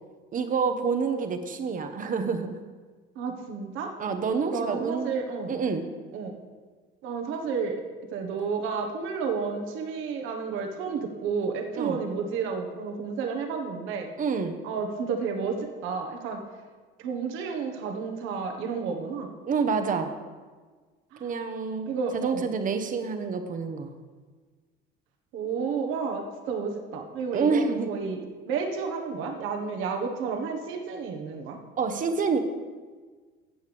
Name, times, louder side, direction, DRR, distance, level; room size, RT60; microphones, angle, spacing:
voice 1, 0.3-2.6 4.0-5.1 5.5-5.9 11.8-12.0 14.2-14.6 19.4-20.1 21.2-21.9 22.1-23.9 27.3-27.9 31.8-32.4, right 5 dB, 40° right, 7 dB, 1.1 m, -27 dB
voice 2, 3.1-3.9 4.4-5.6 6.1-6.3 7.0-7.8 8.1-14.1 14.6-16.4 17.0-19.3 21.1-21.3 21.9-22.5 25.3-28.2 28.5-31.6, right 5 dB, 75° right, 3 dB, 1.4 m, -31 dB
13.5 x 8.0 x 3.5 m, 1.4 s
cardioid pair, 110°, 21 cm